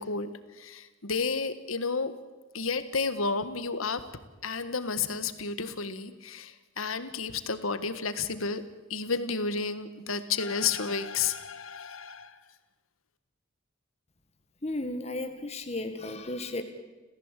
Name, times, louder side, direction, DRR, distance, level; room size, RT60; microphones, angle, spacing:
voice 1, 0.0-2.2 2.5-4.0 4.4-8.6 8.9-12.4, left 5 dB, 75° left, 12 dB, 1.6 m, -31 dB
voice 2, 14.6-16.6, left 2 dB, 30° left, 6 dB, 1.7 m, -34 dB
30.0 x 15.5 x 8.3 m, 1.2 s
head